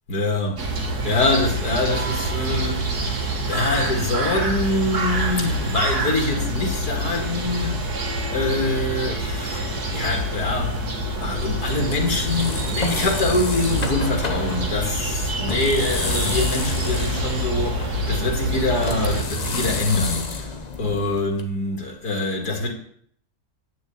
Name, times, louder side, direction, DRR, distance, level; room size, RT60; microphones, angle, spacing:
voice 1, 0.1-0.7 1.0-7.8 8.3-9.6 9.9-10.9 11.2-20.5 20.8-22.7, left 2 dB, 90° left, 2.5 m, -25 dB
sound 1, 0.6-19.2, right 1 dB, 85° right, 2.5 m, -26 dB
sound 2, 11.1-21.4, left 3 dB, 30° left, 1.0 m, -30 dB
9.1 x 6.4 x 8.6 m
omnidirectional pair, 1.6 m